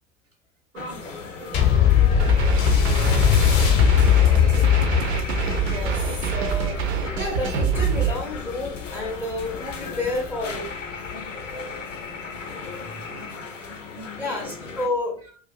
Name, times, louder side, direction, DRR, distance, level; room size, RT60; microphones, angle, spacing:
voice 1, 0.7-1.1 1.4-5.0 13.0-13.5 13.9-14.5 15.3-15.4, right 1 dB, 85° right, 0.9 m, -41 dB
sound 1, 0.8-14.9, left 4 dB, 85° left, 0.5 m, -36 dB
sound 2, 1.5-10.3 11.1-11.2, left 11 dB, 40° left, 0.7 m, -21 dB
sound 3, 2.1-8.1, right 8 dB, 60° right, 0.5 m, -25 dB
voice 2, 5.6-10.7 14.2-15.2, left 2 dB, 10° left, 0.5 m, -30 dB
2.4 x 2.3 x 2.4 m
figure-of-eight pair, 80°, 37 cm